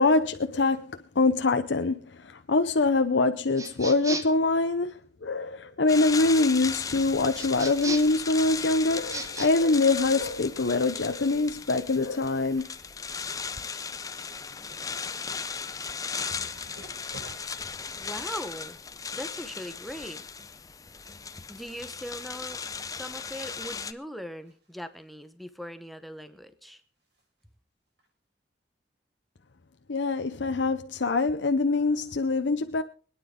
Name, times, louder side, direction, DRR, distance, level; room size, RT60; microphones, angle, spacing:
voice 1, 0.0-12.7 29.9-32.8, left 3 dB, 90° left, 0.8 m, -24 dB
sound 1, 3.5-4.4 7.3-8.2 9.0-9.5, right 3 dB, 20° right, 1.2 m, -35 dB
sound 2, 5.9-23.9, left 5 dB, 20° left, 0.6 m, -37 dB
sound 3, 11.6-11.7 11.9-21.1 21.5-21.9 22.2-23.1 23.4-23.5 24.4-24.7 25.0-25.1 25.5-25.6 27.1-27.2 28.0-28.1, right 1 dB, 75° right, 6.5 m, -54 dB
voice 2, 18.0-18.8 19.1-20.2 21.5-22.6 22.9-26.8, equal, ahead, 1.0 m, -40 dB
24.5 x 9.8 x 3.7 m
head